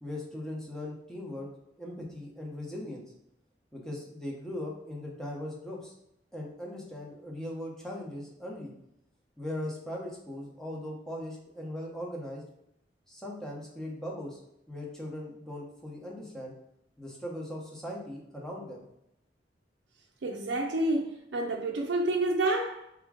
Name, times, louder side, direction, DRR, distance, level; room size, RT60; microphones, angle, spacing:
voice 1, 0.0-1.5 1.8-3.0 3.7-5.9 6.3-8.7 9.4-12.4 13.1-14.4 14.7-16.5 17.0-18.8, left 1 dB, 5° left, 1.0 m, -39 dB
voice 2, 20.2-22.9, right 2 dB, 85° right, 0.5 m, -29 dB
3.6 x 3.0 x 4.7 m
head